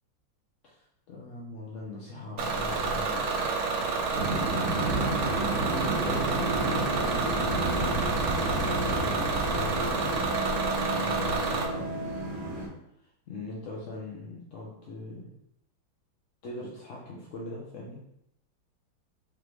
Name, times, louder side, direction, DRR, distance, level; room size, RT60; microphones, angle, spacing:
voice 1, 1.1-3.5 5.4-7.5 8.8-12.1 13.3-15.3 16.4-18.0, left 2 dB, 75° left, -4 dB, 0.7 m, -40 dB
Bus / Engine, 2.4-11.7, right 3 dB, 80° right, 0.8 m, -29 dB
sound 1, 4.1-12.7, right 2 dB, 35° right, 1.0 m, -33 dB
sound 2, 4.7-12.7, right 1 dB, 65° right, 1.3 m, -36 dB
3.7 x 3.5 x 3.0 m, 0.79 s
omnidirectional pair, 2.3 m